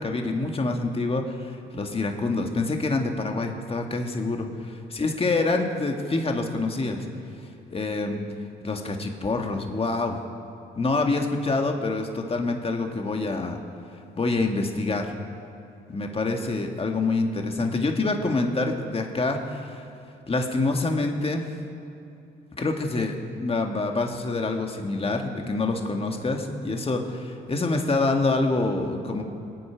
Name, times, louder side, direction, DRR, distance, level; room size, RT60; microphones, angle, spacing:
voice 1, 0.0-7.1 7.7-8.2 8.6-10.2 10.8-13.6 14.2-15.1 15.9-19.9 20.3-21.4 22.6-29.2, left 3 dB, 30° left, 3 dB, 1.8 m, -26 dB
24.5 x 8.8 x 5.0 m, 2.7 s
cardioid pair, 90°, 20 cm